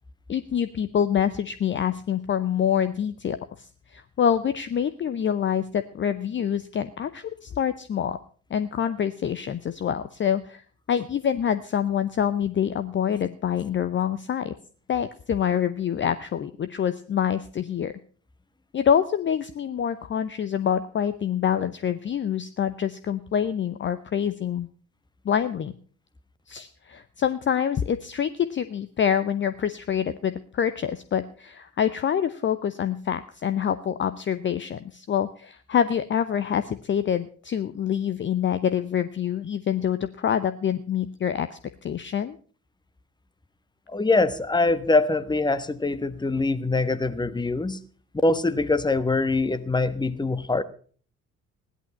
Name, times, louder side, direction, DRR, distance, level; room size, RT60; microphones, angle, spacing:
voice 1, 0.3-8.2 8.5-10.6 10.9-14.5 14.9-17.9 18.7-24.7 25.2-25.7 26.5-41.6 41.8-42.4, left 8 dB, 30° left, 11 dB, 0.8 m, -26 dB
voice 2, 43.9-47.8 48.2-50.6, left 3 dB, 10° left, 12 dB, 1.2 m, -23 dB
16.5 x 11.0 x 5.5 m, 0.43 s
figure-of-eight pair, 45°, 39 cm